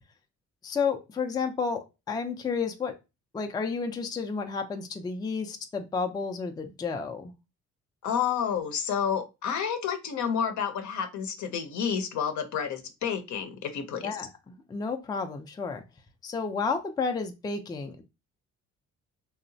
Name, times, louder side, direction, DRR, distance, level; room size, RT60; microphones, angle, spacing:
voice 1, 0.6-3.0 3.3-7.3 14.0-15.8 16.2-18.0, left 5 dB, 15° left, 5 dB, 0.3 m, -31 dB
voice 2, 8.0-14.2, left 7 dB, 70° left, 7 dB, 0.6 m, -30 dB
2.9 x 2.0 x 2.6 m, 0.25 s
cardioid pair, 90°, 30 cm